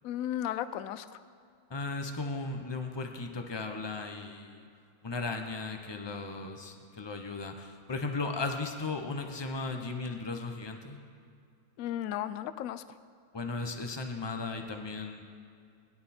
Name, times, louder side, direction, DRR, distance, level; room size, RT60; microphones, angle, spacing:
voice 1, 0.0-1.1 11.8-12.8, left 11 dB, 75° left, 13 dB, 0.8 m, -34 dB
voice 2, 1.7-4.7 5.0-11.0 13.3-15.2, left 3 dB, 25° left, 4 dB, 0.6 m, -36 dB
21.0 x 11.0 x 4.4 m, 2.3 s
omnidirectional pair, 2.0 m